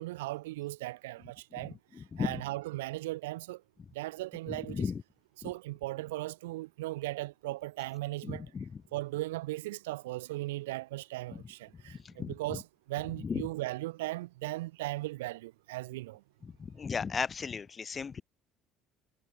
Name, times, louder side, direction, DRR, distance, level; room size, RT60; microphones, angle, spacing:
voice 1, 0.0-1.8 2.2-3.6 4.0-4.9 5.4-8.5 8.9-16.2, right 18 dB, 85° right, 5.4 m, -37 dB
voice 2, 1.9-2.4 4.5-5.0 5.4-5.5 8.2-8.7 11.3-11.4 12.0-12.6 13.2-13.4 16.4-18.2, left 6 dB, 35° left, 4.1 m, -36 dB
hypercardioid pair, 65°, 0 cm